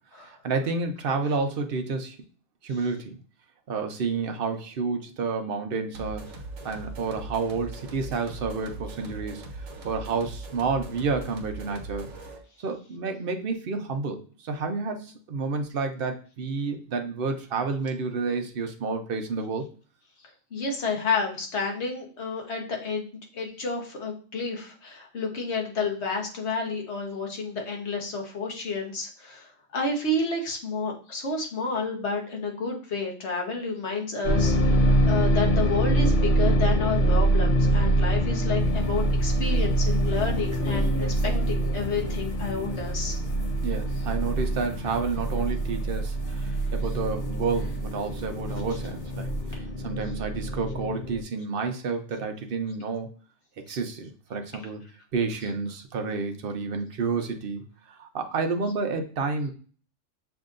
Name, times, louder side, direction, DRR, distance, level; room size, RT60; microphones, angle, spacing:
voice 1, 0.2-2.2 2.6-3.2 3.7-6.3 6.6-12.1 12.6-19.6 43.6-53.1 53.7-54.8 55.1-57.6 57.9-59.5, right 4 dB, 50° right, 5 dB, 0.8 m, -30 dB
sound 1, 5.9-12.5, right 2 dB, 70° right, 1.2 m, -40 dB
voice 2, 20.5-43.2 53.7-53.8, left 3 dB, 55° left, 1 dB, 1.3 m, -30 dB
sound 2, 34.2-51.2, right 1 dB, 75° left, 0.4 m, -25 dB
sound 3, 38.6-49.5, equal, 15° left, 1.2 m, -40 dB
6.9 x 2.7 x 2.5 m, 0.40 s
omnidirectional pair, 1.4 m